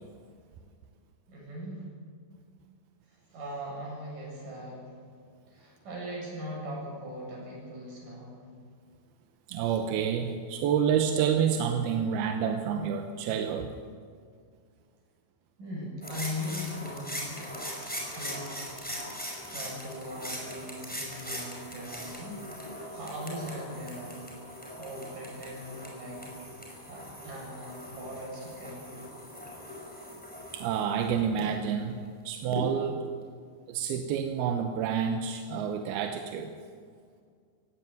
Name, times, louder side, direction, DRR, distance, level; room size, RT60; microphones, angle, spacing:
voice 1, 1.3-1.9 3.1-4.9 5.5-8.4 15.6-17.7 18.1-18.9 19.5-22.4 22.7-24.2 24.8-26.3 26.9-29.0, equal, 55° right, -3 dB, 8.9 m, -40 dB
voice 2, 9.5-13.7 30.5-32.0 32.3-33.1 33.7-36.5, right 7 dB, 85° right, 5 dB, 2.9 m, -28 dB
sound 1, 16.0-31.4 32.5-32.6, equal, ahead, 4.8 m, -40 dB
17.0 x 17.0 x 9.5 m, 2.1 s
omnidirectional pair, 4.4 m